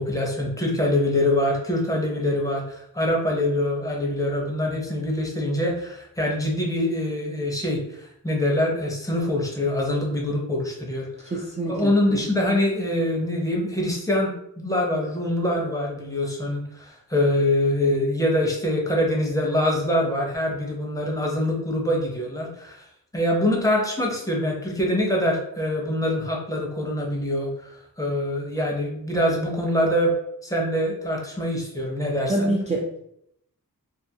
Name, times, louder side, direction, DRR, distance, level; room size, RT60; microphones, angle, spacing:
voice 1, 0.0-11.1 11.7-14.3 14.6-22.8 23.1-30.2 30.4-32.5, left 1 dB, 10° left, -2 dB, 0.7 m, -24 dB
voice 2, 11.3-12.3 32.3-33.0, right 1 dB, 20° right, -1 dB, 0.3 m, -26 dB
2.5 x 2.5 x 2.7 m, 0.74 s
wide cardioid pair, 90°, 36 cm